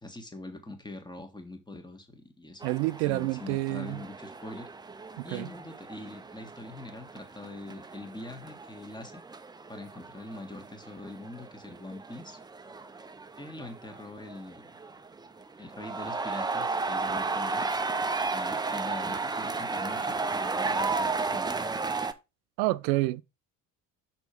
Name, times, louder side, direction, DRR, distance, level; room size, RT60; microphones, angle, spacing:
voice 1, 0.0-2.6 3.0-4.7 5.2-9.2 9.7-12.4 13.4-14.7 15.6-17.7 18.3-21.6, left 2 dB, 10° left, 1.6 m, -43 dB
sound 1, 2.6-22.1, right 3 dB, 10° right, 0.5 m, -34 dB
voice 2, 2.6-4.0 5.2-5.5 22.6-23.2, right 20 dB, 65° right, 0.6 m, -28 dB
6.1 x 4.6 x 5.1 m
hypercardioid pair, 65°, 48 cm